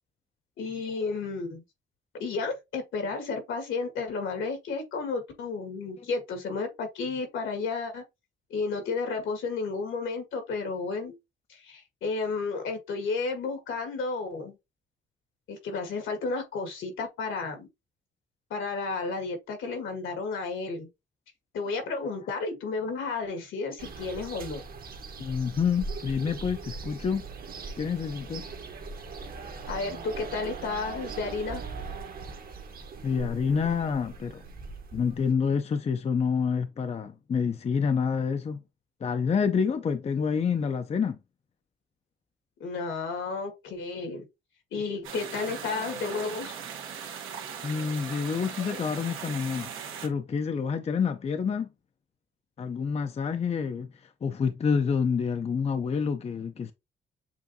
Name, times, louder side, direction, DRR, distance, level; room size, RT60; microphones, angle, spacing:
voice 1, 0.6-1.6 2.2-8.0 8.5-11.1 11.5-14.6 15.5-17.7 18.5-20.9 21.5-24.6 29.7-31.6 42.6-44.2 44.7-46.6, left 4 dB, 75° left, 1.8 m, -32 dB
sound 1, 23.8-35.3, right 4 dB, 50° right, 1.1 m, -40 dB
voice 2, 25.2-27.2 27.8-28.5 33.0-34.4 34.9-38.6 39.0-41.2 47.6-49.7 50.0-51.7 52.6-56.7, left 6 dB, 35° left, 0.5 m, -28 dB
sound 2, 45.0-50.1, right 7 dB, 85° right, 1.3 m, -39 dB
7.1 x 2.6 x 2.7 m
cardioid pair, 90°, 20 cm